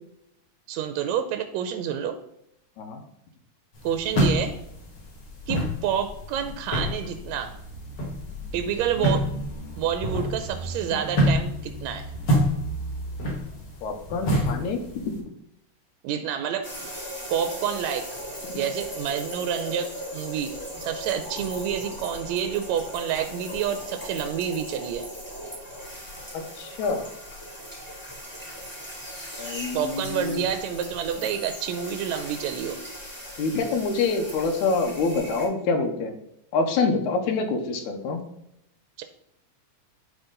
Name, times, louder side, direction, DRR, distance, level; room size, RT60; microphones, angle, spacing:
voice 1, 0.7-2.2 3.8-4.6 5.5-7.5 8.5-9.3 9.8-12.1 16.0-16.7 17.3-18.0 18.6-20.5 20.8-25.1 29.7-32.8 39.0-39.1, right 8 dB, 80° right, 8 dB, 1.8 m, -28 dB
sound 1, 3.7-15.2, equal, 45° left, 2.0 m, -28 dB
voice 2, 13.8-15.4 26.3-27.1 29.4-30.4 33.4-36.1 36.5-38.2, left 4 dB, 90° left, 5 dB, 2.4 m, -26 dB
sound 2, 16.6-35.5, equal, 5° left, 2.3 m, -38 dB
10.5 x 4.2 x 3.8 m, 0.79 s
omnidirectional pair, 3.3 m